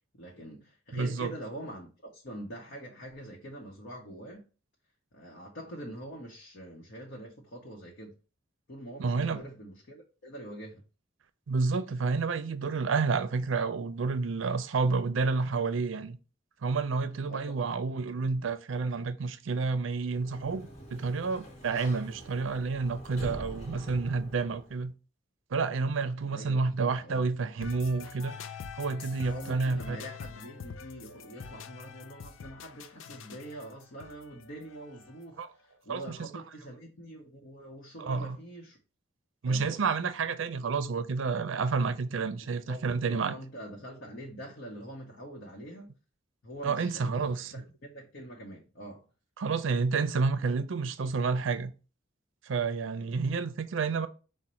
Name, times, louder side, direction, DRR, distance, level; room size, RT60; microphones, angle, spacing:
voice 1, 0.1-4.5 5.1-8.2 8.7-10.8 17.3-17.7 26.3-27.3 29.3-38.8 39.5-40.0 42.7-45.9 46.4-49.0, right 1 dB, 60° left, 0.9 m, -45 dB
voice 2, 0.9-1.3 9.0-9.4 11.5-16.2 16.6-24.9 25.5-28.3 28.7-30.0 35.4-35.5 35.9-36.3 38.0-38.4 39.4-43.3 46.6-47.6 49.4-51.7 52.4-54.1, right 4 dB, 70° right, 0.5 m, -30 dB
Sliding door, 20.0-24.8, right 1 dB, 35° left, 1.1 m, -45 dB
sound 1, 27.6-35.4, left 6 dB, 75° left, 0.4 m, -45 dB
5.0 x 2.1 x 4.3 m
head